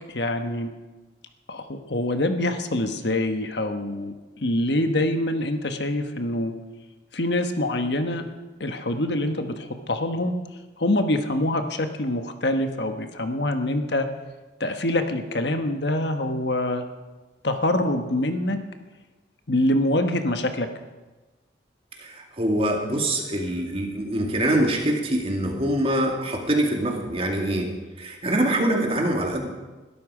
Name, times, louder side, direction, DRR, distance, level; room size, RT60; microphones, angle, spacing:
voice 1, 0.1-0.7 1.5-6.5 7.1-8.2 8.6-10.3 10.8-14.1 14.6-16.8 17.4-18.6 19.5-20.7, left 1 dB, 65° left, 7 dB, 1.3 m, -25 dB
voice 2, 22.0-27.7 28.0-29.5, right 1 dB, 30° right, 1 dB, 2.4 m, -24 dB
21.5 x 13.0 x 5.0 m, 1.2 s
head